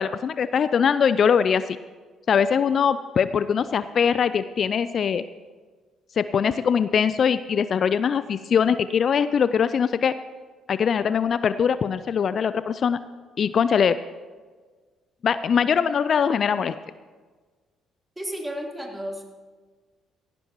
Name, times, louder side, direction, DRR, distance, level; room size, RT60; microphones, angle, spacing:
voice 1, 0.0-1.8 2.3-5.3 6.2-10.1 10.7-13.0 13.4-14.0 15.2-16.7, left 7 dB, 50° left, 14 dB, 0.4 m, -22 dB
voice 2, 18.2-19.2, equal, 15° right, -1 dB, 3.6 m, -32 dB
16.5 x 16.0 x 3.1 m, 1.4 s
hypercardioid pair, 50°, 0 cm